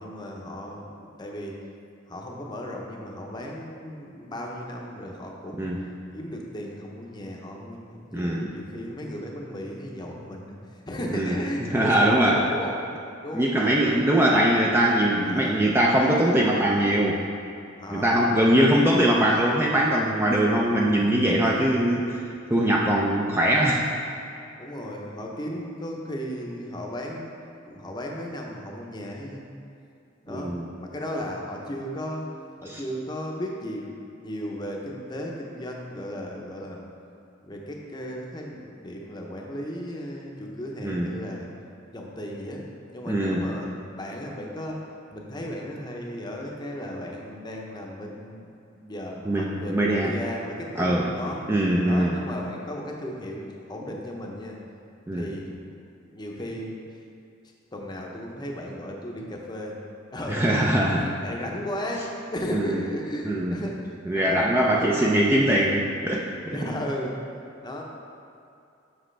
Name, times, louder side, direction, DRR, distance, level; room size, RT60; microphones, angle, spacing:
voice 1, 0.0-1.5 2.1-5.7 6.1-10.5 10.9-12.7 13.2-13.5 15.2-15.6 17.8-18.8 24.6-27.3 27.6-29.4 30.2-32.3 32.6-33.9 34.2-36.8 37.4-41.5 41.9-42.6 42.9-43.7 43.9-44.8 45.1-51.4 51.9-54.6 55.1-55.8 56.1-56.8 57.7-59.8 60.1-60.4 60.9-63.8 64.1-65.0 66.5-67.2 67.6-67.8, equal, 20° left, -1 dB, 0.7 m, -35 dB
voice 2, 5.6-5.9 8.1-8.5 11.1-11.4 11.7-12.4 13.3-17.2 17.9-22.2 22.5-23.8 30.3-30.7 32.7-32.8 40.8-41.2 43.1-43.5 49.3-50.1 50.8-51.1 51.5-52.2 55.1-55.3 60.3-61.0 62.5-62.8 63.2-63.6 64.1-66.6, right 1 dB, 10° right, -3 dB, 0.4 m, -22 dB
7.5 x 6.1 x 3.3 m, 2.6 s
head